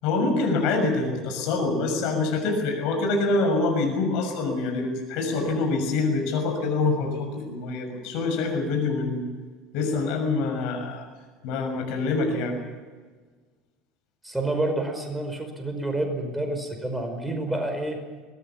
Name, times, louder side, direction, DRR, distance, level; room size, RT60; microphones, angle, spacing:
voice 1, 0.0-9.2 9.7-11.0 11.4-12.6, left 3 dB, 55° left, 3 dB, 6.6 m, -25 dB
voice 2, 14.2-18.0, right 2 dB, 10° right, 4 dB, 5.2 m, -28 dB
23.0 x 19.5 x 7.2 m, 1.4 s
figure-of-eight pair, 70°, 0 cm